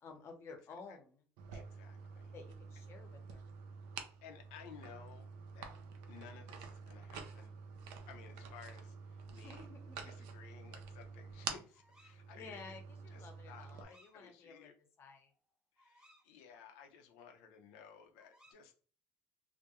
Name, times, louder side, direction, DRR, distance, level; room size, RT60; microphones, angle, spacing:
voice 1, 0.0-1.2 2.3-3.5 9.3-10.3 12.3-14.7 15.0-15.3, left 4 dB, 45° left, 5 dB, 0.8 m, -53 dB
sound 1, 1.4-13.8, right 5 dB, 85° right, 0.4 m, -49 dB
voice 2, 1.5-2.3 4.2-5.7 6.1-7.5 8.1-9.7 10.0-12.8 13.1-14.7 15.8-18.7, left 7 dB, 90° left, 5 dB, 0.5 m, -57 dB
sound 2, 11.7-12.2 13.7-14.2 14.6-14.7 15.0-16.3 18.2-18.5, equal, 15° right, 0.8 m, -67 dB
2.3 x 2.1 x 2.9 m, 0.40 s
supercardioid pair, 100°, 6 cm